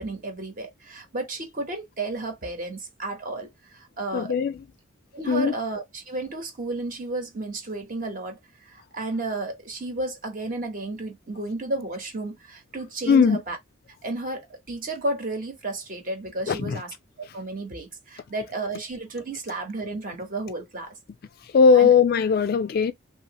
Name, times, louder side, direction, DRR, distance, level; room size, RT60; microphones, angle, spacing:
voice 1, 0.0-4.3 5.1-8.4 8.7-13.6 14.0-20.9 21.7-21.9, right 2 dB, 40° right, 1.1 m, -32 dB
voice 2, 4.1-4.6 5.3-5.5 13.1-13.4 16.5-16.8 21.5-22.9, left 6 dB, 45° left, 0.3 m, -19 dB
2.9 x 2.8 x 2.9 m
head